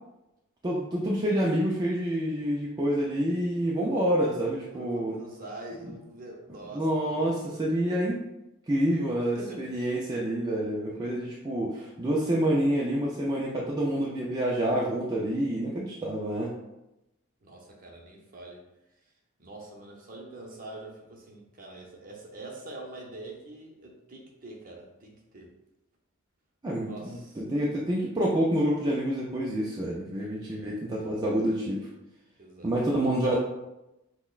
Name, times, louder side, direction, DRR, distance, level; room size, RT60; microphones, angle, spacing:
voice 1, 0.6-5.1 6.7-8.2 8.7-16.5 26.6-31.9 32.6-33.4, right 1 dB, 20° right, -5 dB, 0.4 m, -27 dB
voice 2, 4.7-7.3 9.3-9.6 10.9-11.3 17.4-18.6 19.4-25.5 26.8-27.4 30.4-30.8 32.4-32.7, right 2 dB, 40° right, -1 dB, 0.7 m, -44 dB
5.8 x 2.1 x 2.4 m, 0.93 s
head